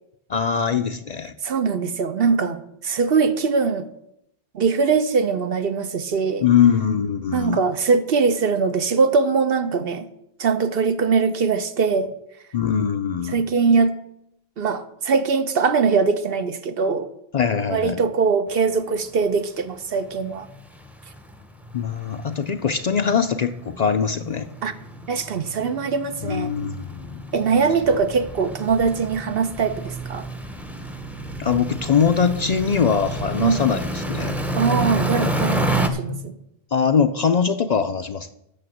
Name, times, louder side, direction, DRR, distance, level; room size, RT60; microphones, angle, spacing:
voice 1, 0.3-1.3 6.4-7.6 12.5-13.4 17.3-18.0 21.7-24.5 26.2-27.1 31.4-34.3 36.0-36.2 36.7-38.3, left 7 dB, 50° left, 0.6 m, -22 dB
voice 2, 1.4-3.9 4.5-6.4 7.3-10.1 10.4-12.1 13.3-13.9 14.6-17.1 17.7-20.5 24.6-24.7 25.1-26.5 27.3-30.3 33.4-33.6 34.5-36.3, right 5 dB, 65° right, 1.0 m, -21 dB
sound 1, 18.8-18.9 19.1-19.3 19.7-19.8 20.0-35.9, right 1 dB, ahead, 0.7 m, -30 dB
8.8 x 6.9 x 7.7 m
omnidirectional pair, 1.1 m